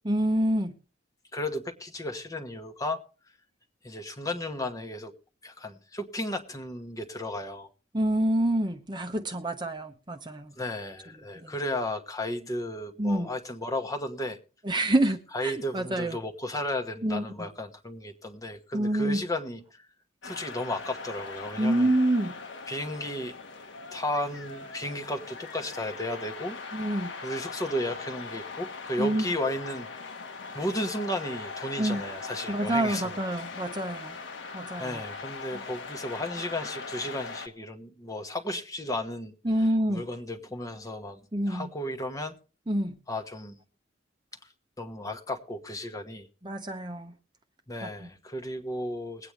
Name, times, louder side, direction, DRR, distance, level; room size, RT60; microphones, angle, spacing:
voice 1, 0.0-0.7 7.9-10.5 11.4-11.5 13.0-13.3 14.6-16.2 17.0-17.2 18.7-19.2 21.6-22.3 26.7-27.1 29.0-29.2 31.8-32.0 32.5-34.2 34.5-35.0 35.5-35.6 39.4-40.0 41.3-41.7 42.7-43.0 46.4-47.1 47.8-48.1, right 1 dB, 25° right, 0.9 m, -27 dB
voice 2, 1.3-3.0 3.8-5.1 5.4-7.7 10.5-14.4 15.3-19.9 20.2-21.9 22.7-23.3 23.9-26.6 27.2-29.9 30.5-33.2 34.8-41.2 41.5-42.3 43.1-43.6 44.8-46.3 47.7-49.3, left 1 dB, 20° left, 1.2 m, -34 dB
sound 1, 20.2-37.5, left 4 dB, 80° left, 1.6 m, -40 dB
21.5 x 8.8 x 3.3 m
head